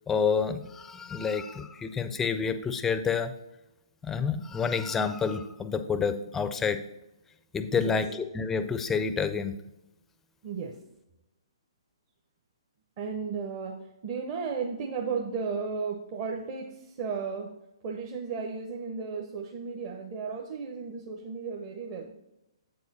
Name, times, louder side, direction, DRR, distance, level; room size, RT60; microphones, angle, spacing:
voice 1, 0.1-3.3 4.0-6.8 7.5-8.1 8.3-9.5, left 6 dB, 10° left, 10 dB, 0.5 m, -28 dB
voice 2, 10.4-10.7 13.0-13.8 14.0-17.5 17.8-22.1, right 5 dB, 35° right, -1 dB, 0.8 m, -34 dB
7.8 x 4.7 x 4.1 m, 0.92 s
figure-of-eight pair, 125°, 3 cm